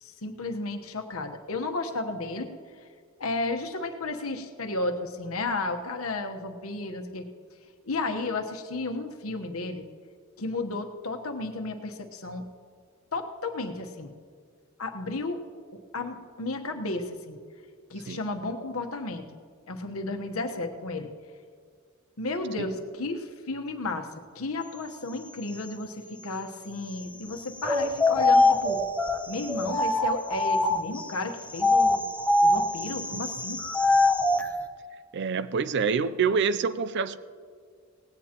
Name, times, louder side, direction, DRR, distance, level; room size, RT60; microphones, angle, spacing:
voice 1, 0.0-2.5 2.8-2.9 3.2-7.2 7.8-9.9 10.4-12.4 13.1-14.1 14.8-15.4 15.9-17.4 17.9-19.2 19.7-21.1 22.2-24.1 24.3-28.8 29.3-32.0 32.4-33.6, left 2 dB, 85° left, 5 dB, 1.2 m, -33 dB
sound 1, 27.6-31.0 31.5-34.5, left 2 dB, 5° left, 0.7 m, -23 dB
voice 2, 35.1-37.2, right 5 dB, 55° right, 15 dB, 0.5 m, -26 dB
18.5 x 16.5 x 3.0 m, 2.1 s
head